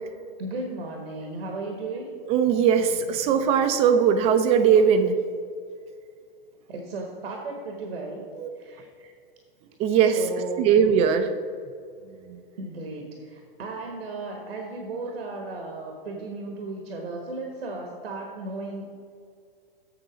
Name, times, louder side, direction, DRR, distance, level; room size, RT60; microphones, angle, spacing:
voice 1, 0.4-2.1 3.2-3.3 6.7-8.3 8.6-9.1 10.1-10.7 12.6-18.9, right 3 dB, 90° right, 2 dB, 1.3 m, -35 dB
voice 2, 2.3-5.2 8.4-8.5 9.8-10.2 10.6-11.3 12.3-12.4, right 7 dB, 20° right, 9 dB, 0.4 m, -20 dB
7.5 x 6.7 x 5.0 m, 2.3 s
hypercardioid pair, 135°, 29 cm